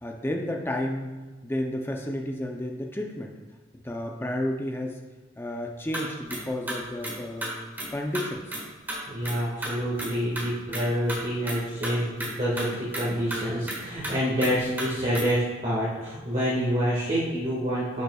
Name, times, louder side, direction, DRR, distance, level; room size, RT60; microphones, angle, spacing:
voice 1, 0.0-1.1 1.4-3.3 3.7-5.0 5.4-7.6 7.9-8.6, left 1 dB, 10° left, 2 dB, 0.5 m, -31 dB
sound 1, 5.9-6.0 6.3-6.4 6.7-7.1 7.4-7.5 7.8-7.9 8.1-8.2 8.5-8.6 8.9-9.0 9.2-9.3 9.6-10.1 10.4-10.5 10.7-10.8 11.1-11.2 11.4-11.6 11.8-11.9 12.2-12.3 12.6-12.7 12.9-13.0 13.3-13.4 13.7-13.8 14.0-14.1 14.4-14.5 14.8-14.9 15.1-15.2, right 1 dB, 10° right, 1.4 m, -32 dB
voice 2, 9.1-18.0, equal, 35° right, -9 dB, 1.7 m, -27 dB
10.0 x 5.4 x 2.3 m, 1.3 s
head